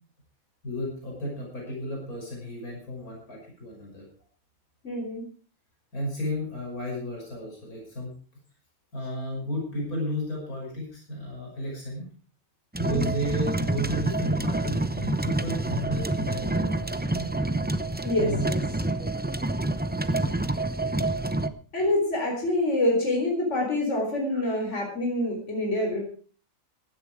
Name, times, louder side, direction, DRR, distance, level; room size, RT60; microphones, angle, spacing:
voice 1, 0.6-4.0 5.9-8.1 8.9-12.1 12.8-17.3 18.2-18.5 24.3-24.4, left 1 dB, 80° left, -2 dB, 6.5 m, -33 dB
voice 2, 4.8-5.2 12.9-13.1 18.0-18.6 21.7-26.0, left 1 dB, 50° left, 0 dB, 4.4 m, -26 dB
sound 1, 12.7-21.5, right 2 dB, 15° right, 0.3 m, -27 dB
16.0 x 11.0 x 4.8 m, 0.40 s
omnidirectional pair, 1.5 m